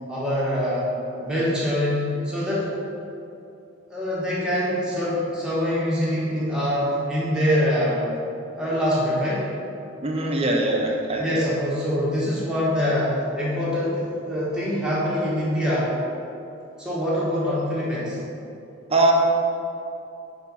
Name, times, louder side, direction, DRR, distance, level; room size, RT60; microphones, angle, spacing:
voice 1, 0.1-0.9 1.1-2.7 3.9-8.1 8.5-9.4 11.2-15.9 16.8-18.2, equal, 5° right, -9 dB, 1.4 m, -24 dB
voice 2, 10.0-11.4 18.9-19.1, right 2 dB, 30° right, 0 dB, 0.6 m, -22 dB
4.8 x 4.4 x 5.6 m, 2.7 s
head